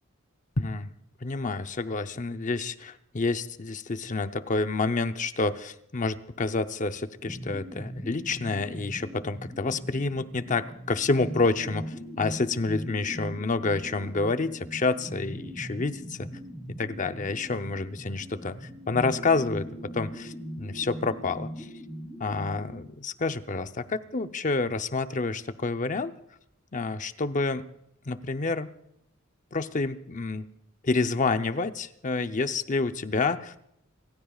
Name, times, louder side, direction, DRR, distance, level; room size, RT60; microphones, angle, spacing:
voice 1, 0.6-0.9 1.2-16.3 16.8-21.7 22.2-26.1 26.7-27.7 28.1-28.7 29.5-30.5 30.8-33.8, left 3 dB, 35° left, 9 dB, 0.7 m, -29 dB
sound 1, 7.3-22.8, equal, 10° right, 3.6 m, -40 dB
29.5 x 15.5 x 2.4 m, 0.78 s
head